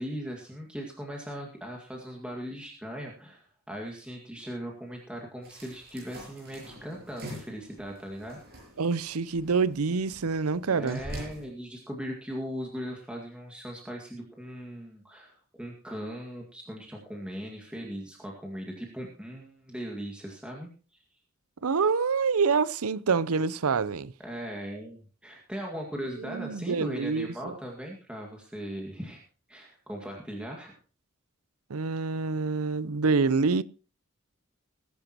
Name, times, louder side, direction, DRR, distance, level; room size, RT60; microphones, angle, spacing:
voice 1, 0.0-8.4 10.7-21.2 24.2-29.2 29.5-30.8, equal, 5° right, 2.0 m, -39 dB
sound 1, 5.4-11.5, equal, 45° right, 7.6 m, -45 dB
voice 2, 8.8-11.0 21.6-24.1 26.2-27.5 31.7-33.6, right 4 dB, 85° right, 0.6 m, -26 dB
21.0 x 10.5 x 3.0 m
head